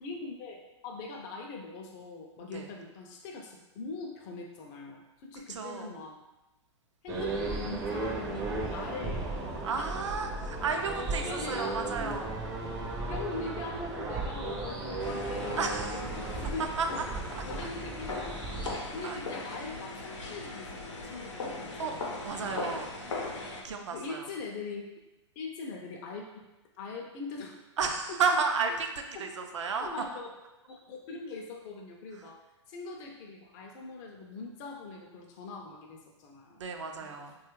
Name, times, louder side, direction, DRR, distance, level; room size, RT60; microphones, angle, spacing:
voice 1, 0.0-6.2 7.0-9.9 11.2-12.2 13.1-16.7 17.4-18.4 18.8-22.0 22.4-22.7 23.9-24.8 25.4-26.5 26.8-27.6 28.1-28.2 29.1-29.3 29.8-30.3 30.7-32.4 32.7-36.6 37.0-37.2, left 3 dB, 40° left, 1 dB, 0.4 m, -42 dB
voice 2, 5.5-5.9 9.6-12.3 15.6-16.0 16.8-16.9 17.3-17.4 19.0-19.2 21.8-21.9 22.2-22.9 23.6-24.3 27.8-28.9 29.2-29.9 36.6-37.4, right 5 dB, 80° right, 5 dB, 0.5 m, -32 dB
sound 1, 7.1-18.8, right 2 dB, 20° right, 0.4 m, -35 dB
sound 2, 15.0-23.6, left 3 dB, 85° left, 0.7 m, -39 dB
3.0 x 2.3 x 3.0 m, 1.1 s
hypercardioid pair, 125°, 15 cm